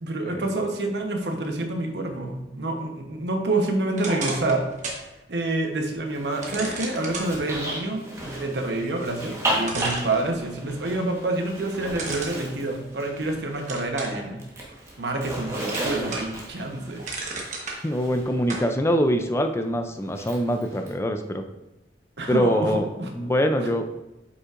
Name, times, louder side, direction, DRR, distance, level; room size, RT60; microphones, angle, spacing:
voice 1, 0.0-4.6 5.3-14.4 15.0-17.0 22.2-23.3, right 2 dB, 75° right, 4 dB, 1.0 m, -28 dB
sound 1, 3.9-5.1 5.5-5.6 6.4-7.3 9.1-9.2 9.6-10.7 12.0-13.2 13.7-14.2 14.7-15.4 15.7-16.4 16.8-17.8 18.5-18.7, right 3 dB, 45° right, 1.1 m, -33 dB
Zipper (clothing), 6.1-13.9 14.2-18.7 20.1-20.9, right 1 dB, 15° right, 1.2 m, -34 dB
voice 2, 17.8-21.4 22.3-23.8, equal, 15° left, 6 dB, 0.3 m, -24 dB
8.1 x 5.4 x 2.5 m, 0.99 s
head